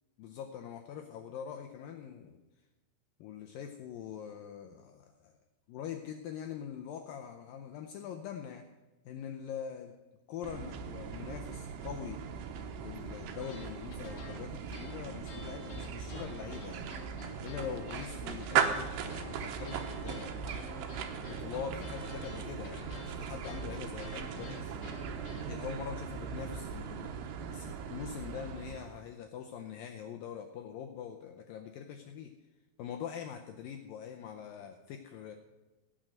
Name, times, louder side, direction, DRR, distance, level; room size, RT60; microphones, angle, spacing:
voice 1, 0.2-2.4 3.2-5.4 5.7-8.7 9.1-9.9 10.3-12.2 12.8-16.9 17.4-20.6 20.9-24.8 25.4-32.3 32.8-35.4, left 8 dB, 80° left, 4 dB, 2.0 m, -43 dB
sound 1, 10.4-29.1, right 7 dB, 85° right, 3.1 m, -38 dB
sound 2, 13.4-25.5, left 4 dB, 50° left, 3.2 m, -50 dB
17.5 x 6.2 x 7.8 m, 1.1 s
omnidirectional pair, 4.8 m